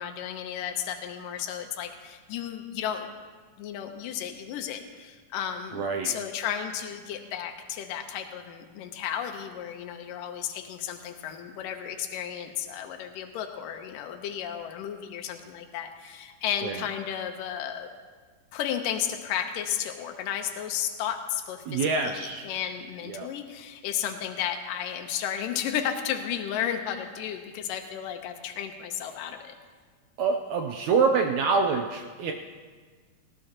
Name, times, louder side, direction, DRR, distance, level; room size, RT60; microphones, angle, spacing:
voice 1, 0.0-3.1 3.6-17.9 18.5-29.5, left 9 dB, 80° left, 5 dB, 2.5 m, -33 dB
voice 2, 5.7-6.1 16.6-16.7 21.7-22.5 23.1-23.3 30.2-32.3, right 5 dB, 80° right, 4 dB, 1.7 m, -26 dB
19.0 x 17.5 x 2.9 m, 1.5 s
omnidirectional pair, 4.0 m